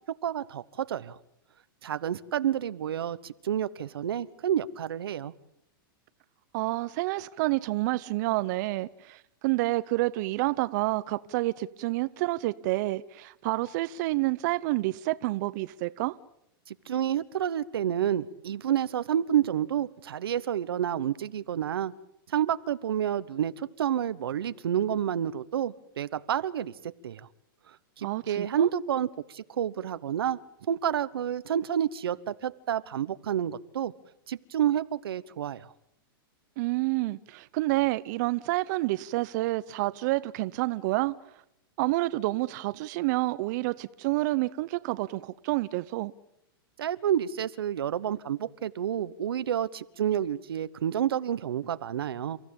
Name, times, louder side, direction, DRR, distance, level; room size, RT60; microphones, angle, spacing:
voice 1, 0.2-1.2 1.8-5.3 16.7-21.9 22.3-26.7 27.0-27.3 28.0-30.4 30.7-33.9 34.3-35.7 46.8-52.4, right 10 dB, 90° right, 1.1 m, -29 dB
voice 2, 6.5-16.2 28.0-28.7 36.6-41.1 41.8-46.1, right 19 dB, 50° right, 0.8 m, -29 dB
30.0 x 15.0 x 8.8 m
hypercardioid pair, 140°, 12 cm